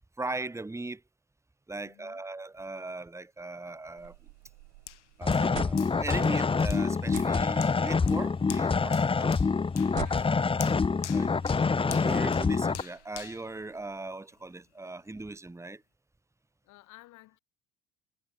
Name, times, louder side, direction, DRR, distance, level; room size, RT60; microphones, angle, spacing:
voice 1, 0.2-1.0 1.7-4.2 5.2-9.3 11.1-15.8, right 2 dB, 10° right, 1.5 m, -39 dB
voice 2, 1.8-2.2 9.9-10.8 16.6-17.4, left 19 dB, 55° left, 6.6 m, -55 dB
sound 1, 4.0-14.1, right 33 dB, 65° right, 5.0 m, -49 dB
Hands, 4.9-14.4 14.9-15.0, left 12 dB, 80° left, 1.1 m, -47 dB
sound 2, 5.2-12.8, left 4 dB, 15° left, 0.9 m, -26 dB
figure-of-eight pair, 60°, 35 cm